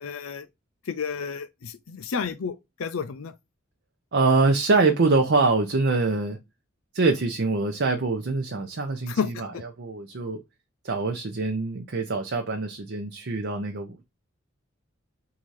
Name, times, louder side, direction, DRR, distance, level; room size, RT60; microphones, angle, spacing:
voice 1, 0.0-0.5 0.9-3.3 9.1-9.6, left 6 dB, 90° left, 0.5 m, -31 dB
voice 2, 4.1-6.4 6.9-9.5 9.8-10.4 10.8-14.0, right 3 dB, 55° right, 0.7 m, -24 dB
3.7 x 2.8 x 4.6 m
head